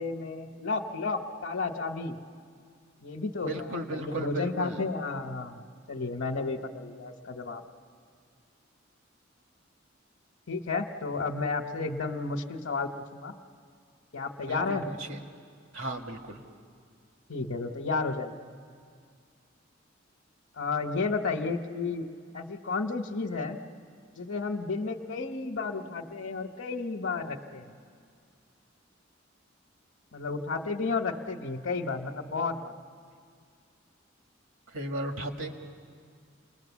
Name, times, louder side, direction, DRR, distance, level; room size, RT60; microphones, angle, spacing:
voice 1, 0.0-2.2 3.0-7.6 10.5-13.3 14.1-14.8 17.3-18.4 20.5-22.1 22.3-23.6 24.2-27.7 30.1-32.8, left 4 dB, 70° left, 2 dB, 1.0 m, -32 dB
voice 2, 3.4-4.8 14.4-15.2 15.7-16.4 34.7-35.6, right 1 dB, 80° right, 4 dB, 1.9 m, -35 dB
29.5 x 21.0 x 7.2 m, 2.1 s
head